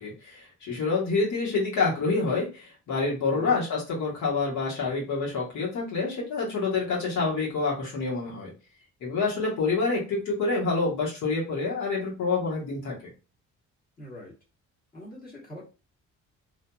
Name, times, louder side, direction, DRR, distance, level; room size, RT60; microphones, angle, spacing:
voice 1, 0.0-8.5 9.0-13.0, left 4 dB, 75° left, -5 dB, 1.4 m, -27 dB
voice 2, 3.3-3.6 14.0-14.3 14.9-15.6, left 1 dB, 30° left, -5 dB, 1.4 m, -42 dB
2.6 x 2.6 x 2.3 m, 0.32 s
cardioid pair, 90°, 30 cm